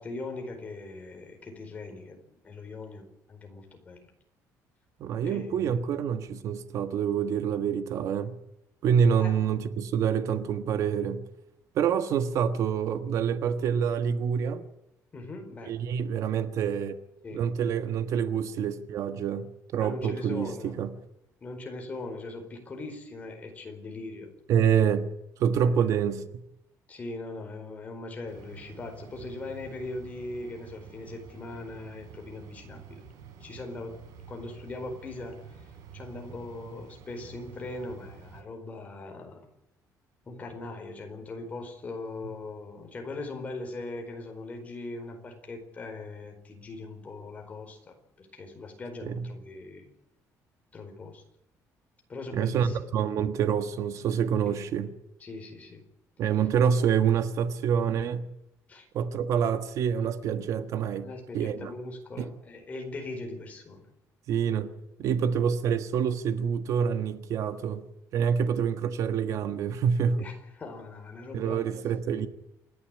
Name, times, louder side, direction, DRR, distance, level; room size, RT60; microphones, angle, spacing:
voice 1, 0.0-2.2 2.4-4.1 5.2-5.8 9.2-9.3 15.1-15.8 17.2-17.5 19.8-20.8 21.4-24.3 25.6-25.9 26.9-33.0 33.4-34.0 34.3-39.5 40.3-49.9 50.7-51.2 52.1-52.8 54.4-54.6 55.2-55.8 56.7-56.8 58.7-58.9 61.0-63.8 70.2-71.6, left 2 dB, 25° left, 4.5 m, -40 dB
voice 2, 5.0-8.3 8.8-11.2 11.7-14.6 15.7-17.0 17.3-20.9 24.5-25.1 25.4-26.2 49.0-49.3 52.3-54.9 56.2-58.2 58.9-61.1 61.3-61.7 62.2-62.3 64.3-64.7 65.0-67.8 68.1-70.3 71.3-72.3, right 7 dB, 55° right, 1.4 m, -27 dB
sound 1, 28.3-38.4, right 7 dB, 80° right, 4.1 m, -48 dB
28.0 x 11.5 x 9.9 m
cardioid pair, 170°, 6 cm